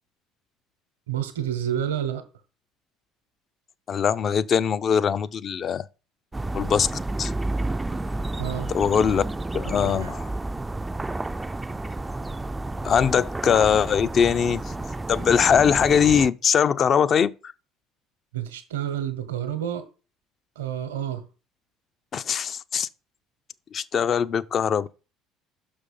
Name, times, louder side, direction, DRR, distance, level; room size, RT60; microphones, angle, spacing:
voice 1, 1.1-2.2 8.4-8.7 9.8-10.1 18.3-19.8 20.6-21.2, right 10 dB, 85° right, 1.0 m, -29 dB
voice 2, 3.9-5.9 6.5-6.9 7.2-7.3 8.7-9.2 9.5-10.3 12.8-14.8 15.1-17.3 22.1-22.9 23.7-24.9, left 7 dB, 45° left, 0.5 m, -21 dB
sound 1, 6.3-16.3, right 2 dB, 15° right, 0.3 m, -31 dB
6.2 x 5.2 x 5.3 m
hypercardioid pair, 65°, 0 cm